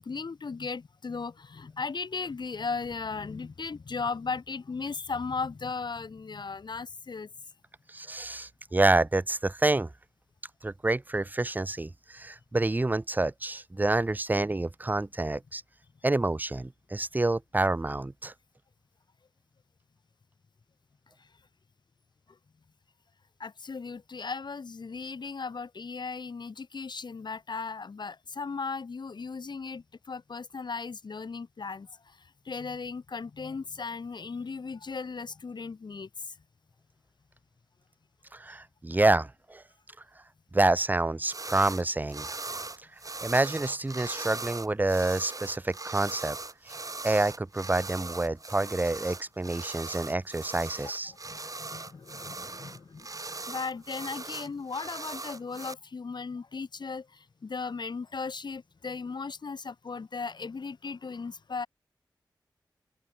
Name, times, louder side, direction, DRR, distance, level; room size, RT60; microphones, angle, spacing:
voice 1, 0.0-7.3 23.4-32.2 32.4-36.4 51.1-53.1 53.5-61.7, left 4 dB, 65° left, 1.4 m, -37 dB
voice 2, 7.9-9.9 10.6-15.6 16.0-18.3 38.3-39.6 40.5-42.3 43.2-46.4 47.0-51.1, right 2 dB, 20° right, 0.6 m, -28 dB
sound 1, 41.3-41.8 42.1-55.7, right 3 dB, 45° right, 2.5 m, -40 dB
open air
cardioid pair, 45°, 8 cm